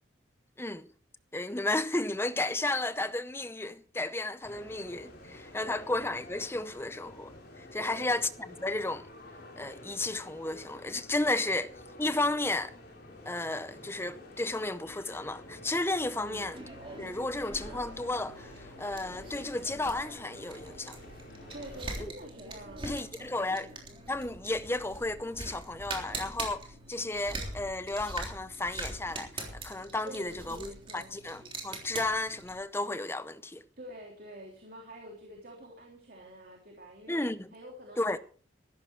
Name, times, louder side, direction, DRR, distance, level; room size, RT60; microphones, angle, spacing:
voice 1, 1.3-9.1 9.6-11.7 12.0-12.7 13.3-16.6 17.0-21.0 22.0-22.1 22.8-23.7 24.1-33.6 37.1-37.5 38.0-38.2, left 2 dB, 10° left, 0.6 m, -33 dB
sound 1, 4.4-22.1, left 1 dB, 50° left, 3.5 m, -50 dB
voice 2, 5.6-6.0 7.8-8.1 16.2-16.5 21.5-23.2 23.5-23.7 30.0-31.1 33.8-37.2 37.5-38.2, equal, 45° right, 3.2 m, -47 dB
sound 2, 16.5-32.6, right 2 dB, 25° right, 3.4 m, -43 dB
15.0 x 13.5 x 4.6 m
head